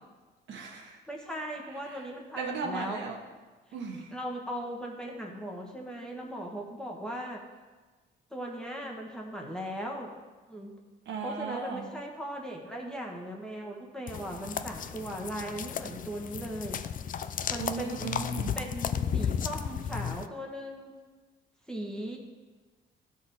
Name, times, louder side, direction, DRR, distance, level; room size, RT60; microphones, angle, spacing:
voice 1, 0.5-1.0 1.8-2.0 2.4-3.2 3.7-4.1 11.1-11.9 17.6-18.6, right 4 dB, 70° right, 1 dB, 1.2 m, -36 dB
voice 2, 1.1-3.1 3.9-7.4 8.3-10.2 10.5-10.7 11.2-16.8 17.5-18.1 18.5-21.0 21.7-22.2, equal, 5° left, -1 dB, 1.3 m, -38 dB
sound 1, 14.1-20.3, left 8 dB, 45° left, 0.4 m, -34 dB
12.0 x 4.1 x 4.1 m, 1.3 s
cardioid pair, 90°, 20 cm